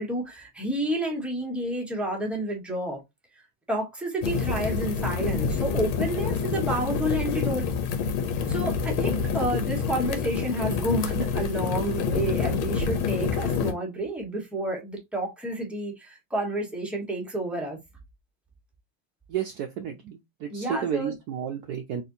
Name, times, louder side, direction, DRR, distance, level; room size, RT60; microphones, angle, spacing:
voice 1, 0.0-3.0 3.7-7.7 8.5-17.8 20.5-21.1, right 1 dB, ahead, 0.8 m, -30 dB
sound 1, 4.2-13.7, left 6 dB, 85° left, 1.6 m, -27 dB
voice 2, 19.3-22.0, right 8 dB, 80° right, 0.8 m, -32 dB
4.1 x 3.5 x 2.7 m
omnidirectional pair, 2.2 m